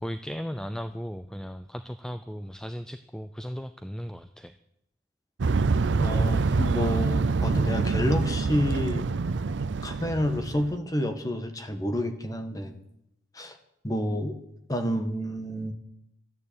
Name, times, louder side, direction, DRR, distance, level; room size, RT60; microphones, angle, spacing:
voice 1, 0.0-4.5, equal, 5° left, 10 dB, 0.4 m, -36 dB
sound 1, 5.4-10.8, right 4 dB, 75° right, 0.5 m, -26 dB
voice 2, 5.9-9.1 9.8-12.7 13.3-13.6 13.8-14.4 14.7-15.7, equal, 20° left, 6 dB, 1.3 m, -29 dB
13.5 x 9.5 x 8.5 m, 0.81 s
head